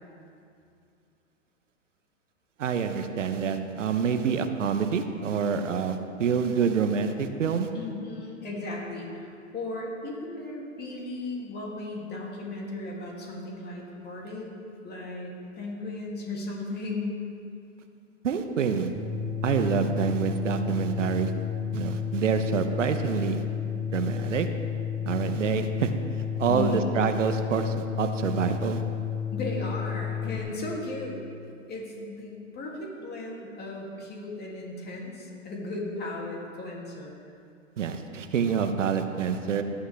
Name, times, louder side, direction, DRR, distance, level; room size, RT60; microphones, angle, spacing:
voice 1, 2.6-7.7 18.2-18.9 19.4-21.3 21.7-23.4 23.9-24.5 25.1-25.9 26.4-28.8 37.8-39.6, right 6 dB, 75° right, 7 dB, 1.0 m, -27 dB
voice 2, 7.7-17.2 26.5-26.9 29.3-31.2 31.7-37.1, left 2 dB, 25° left, -2 dB, 2.8 m, -36 dB
sound 1, 19.0-30.4, left 8 dB, 10° right, 1.3 m, -32 dB
17.0 x 11.0 x 3.5 m, 2.5 s
figure-of-eight pair, 105°, 38 cm